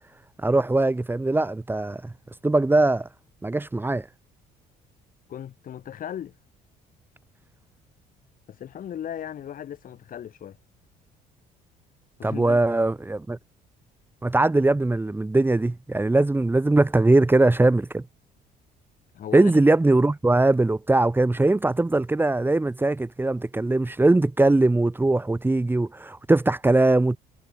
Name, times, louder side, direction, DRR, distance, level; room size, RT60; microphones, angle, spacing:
voice 1, 0.4-2.1 2.4-3.1 3.4-4.1 12.2-13.4 14.2-18.0 19.3-27.2, right 2 dB, 10° right, 3.1 m, -21 dB
voice 2, 5.3-6.3 8.5-10.6 12.2-12.6 19.1-19.6, left 10 dB, 55° left, 7.0 m, -37 dB
cardioid pair, 110°, 17 cm